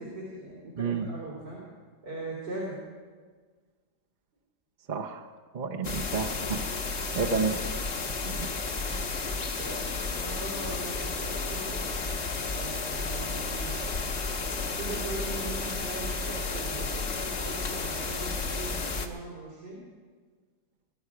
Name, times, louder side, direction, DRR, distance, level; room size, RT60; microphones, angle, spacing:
voice 1, 0.0-1.6 2.0-2.8 6.0-6.5 9.6-11.8 12.4-13.9 14.4-19.8, right 2 dB, 90° right, -5 dB, 3.8 m, -40 dB
voice 2, 4.9-5.3 5.5-6.6 7.1-7.6 8.2-8.5, right 5 dB, 50° right, 2 dB, 0.5 m, -30 dB
sound 1, 5.8-19.1, left 3 dB, 45° left, 1.3 m, -32 dB
21.5 x 11.0 x 4.8 m, 1.5 s
omnidirectional pair, 1.8 m